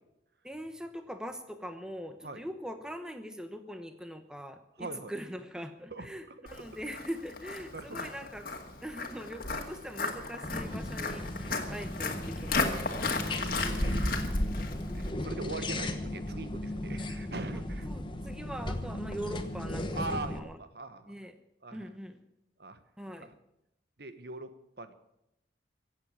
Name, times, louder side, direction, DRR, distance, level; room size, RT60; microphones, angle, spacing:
voice 1, 0.4-8.5 8.8-13.1 13.4-13.8 14.4-14.5 17.5-20.6 21.1-21.3 21.7-22.2 23.0-23.3, equal, 5° right, 8 dB, 0.9 m, -42 dB
voice 2, 4.8-5.1 5.9-6.3 7.7-8.1 13.2-14.2 14.9-17.9 19.9-21.1 21.6-21.9 22.6-22.8 23.2-23.3 24.0-24.5 24.8-24.9, right 2 dB, 60° right, 11 dB, 1.2 m, -41 dB
Walk footsteps, 6.5-15.1, left 3 dB, 50° left, 2.0 m, -34 dB
sound 1, 10.4-20.4, left 1 dB, 25° left, 1.2 m, -36 dB
16.5 x 8.1 x 9.7 m, 0.83 s
head